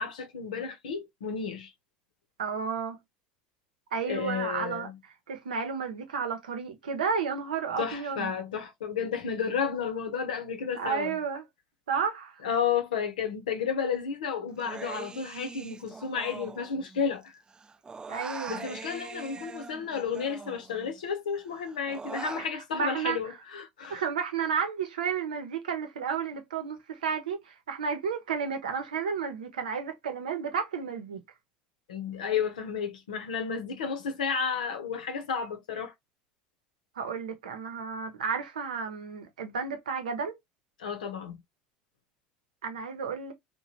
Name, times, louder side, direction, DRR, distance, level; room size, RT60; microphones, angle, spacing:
voice 1, 0.0-1.7 4.0-5.0 7.8-11.2 12.4-17.4 18.5-24.0 31.9-35.9 40.8-41.4, left 6 dB, 85° left, 0.7 m, -32 dB
voice 2, 2.4-3.0 3.9-4.9 5.3-8.3 10.8-11.4 11.9-12.4 18.1-18.6 22.4-22.5 22.7-23.2 23.9-31.2 37.0-40.3 42.6-43.3, right 6 dB, 90° right, 0.7 m, -32 dB
Human voice, 14.6-17.2 17.5-21.0 21.4-22.5, right 4 dB, 20° right, 0.3 m, -42 dB
2.9 x 2.2 x 2.7 m
hypercardioid pair, 85°, 4 cm